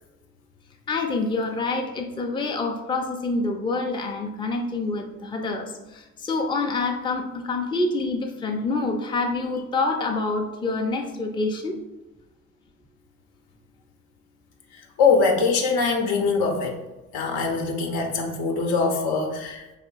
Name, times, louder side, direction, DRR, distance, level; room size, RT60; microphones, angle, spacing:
voice 1, 0.9-11.8, left 3 dB, 10° left, 2 dB, 0.5 m, -27 dB
voice 2, 14.7-16.8 17.1-19.7, left 4 dB, 65° left, 2 dB, 0.8 m, -23 dB
3.5 x 2.4 x 3.9 m, 1.0 s
hypercardioid pair, 55°, 41 cm